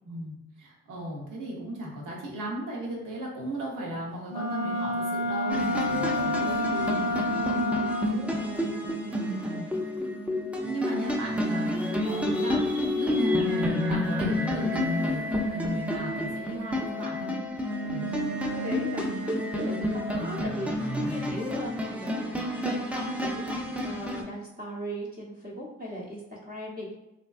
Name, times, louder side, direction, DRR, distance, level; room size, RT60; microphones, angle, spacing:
voice 1, 0.0-7.8 9.1-9.7 10.6-17.3 17.9-18.3 18.6-19.1 19.6-20.0 21.0-21.3, right 1 dB, 70° right, -2 dB, 0.9 m, -36 dB
Wind instrument woodwind instrument, 4.3-8.3, left 1 dB, 55° left, 0.5 m, -29 dB
sound 1, 5.5-24.2, left 1 dB, 5° right, 0.5 m, -29 dB
voice 2, 8.1-9.1 9.5-10.1 18.0-19.2 19.5-22.6 23.2-27.0, equal, 30° right, -6 dB, 0.9 m, -39 dB
2.6 x 2.1 x 2.4 m, 0.91 s
hypercardioid pair, 40°, 32 cm